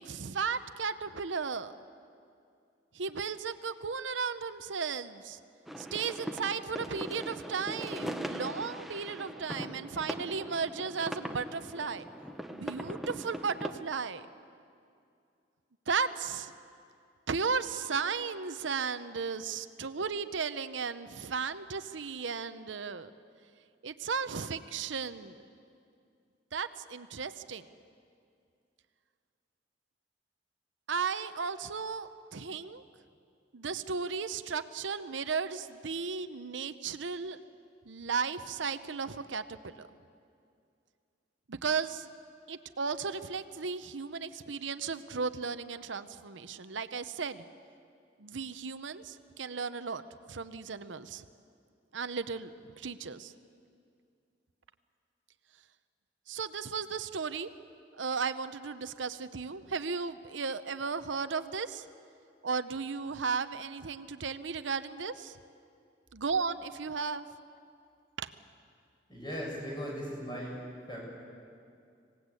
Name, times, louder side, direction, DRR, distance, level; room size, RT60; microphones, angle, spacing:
voice 1, 0.0-1.7 2.9-5.4 5.8-12.1 12.5-14.3 15.9-16.5 17.3-23.1 23.8-25.4 26.5-27.7 30.9-32.8 33.5-37.4 37.9-39.9 41.5-42.1 42.5-47.4 48.2-50.0 50.3-51.2 51.9-53.3 56.3-57.5 57.9-61.9 62.4-65.4 66.1-67.3 68.2-68.3, right 5 dB, 85° right, 11 dB, 0.8 m, -35 dB
sound 1, 5.7-13.7, right 1 dB, ahead, 0.8 m, -40 dB
voice 2, 69.1-71.0, equal, 25° left, -3 dB, 6.9 m, -38 dB
26.0 x 18.0 x 8.3 m, 2.4 s
head